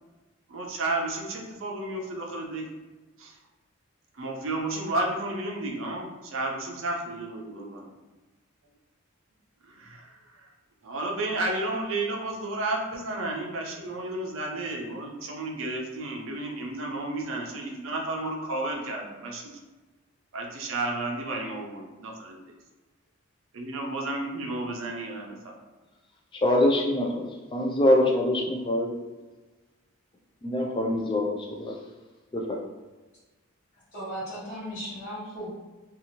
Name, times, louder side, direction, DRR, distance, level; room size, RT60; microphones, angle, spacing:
voice 1, 0.5-2.7 3.2-3.4 4.1-7.9 9.7-10.5 10.8-19.6 20.3-22.4 23.5-25.6, right 2 dB, 70° right, 0 dB, 0.5 m, -32 dB
voice 2, 26.4-27.3 27.5-28.9 30.4-31.7 32.3-32.6, left 1 dB, 25° left, 0 dB, 0.3 m, -24 dB
voice 3, 33.9-35.5, equal, 50° left, -13 dB, 1.1 m, -36 dB
2.7 x 2.4 x 2.9 m, 1.2 s
head